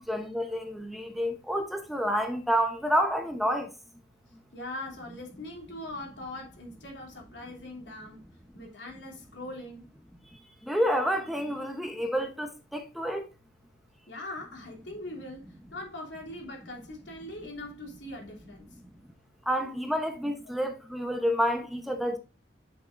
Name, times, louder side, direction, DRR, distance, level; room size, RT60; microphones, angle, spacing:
voice 1, 0.0-3.7 10.7-13.2 19.5-22.2, equal, ahead, 0.8 m, -29 dB
voice 2, 4.5-8.2 8.5-10.0 14.1-18.8 20.4-20.6, left 1 dB, 75° left, 2.9 m, -41 dB
9.9 x 6.1 x 2.6 m
head